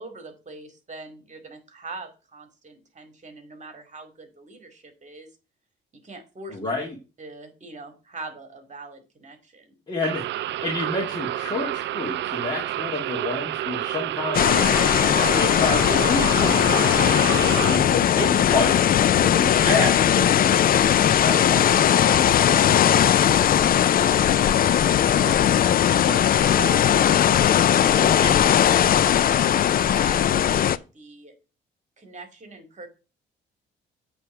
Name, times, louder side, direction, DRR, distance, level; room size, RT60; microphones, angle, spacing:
voice 1, 0.0-5.3 6.0-6.6 7.2-9.8 17.3-17.8 22.7-25.6 26.0-27.8 28.7-31.3 32.0-32.9, right 3 dB, 35° right, 6 dB, 2.3 m, -42 dB
voice 2, 6.5-6.9 9.9-10.2 10.6-14.7 15.3-22.3 28.0-28.5, left 2 dB, 20° left, -2 dB, 2.1 m, -29 dB
sound 1, 10.0-17.8, right 13 dB, 65° right, 0.4 m, -29 dB
sound 2, 14.3-30.8, left 10 dB, 45° left, 0.4 m, -19 dB
8.3 x 3.5 x 5.7 m, 0.31 s
cardioid pair, 90°, 20 cm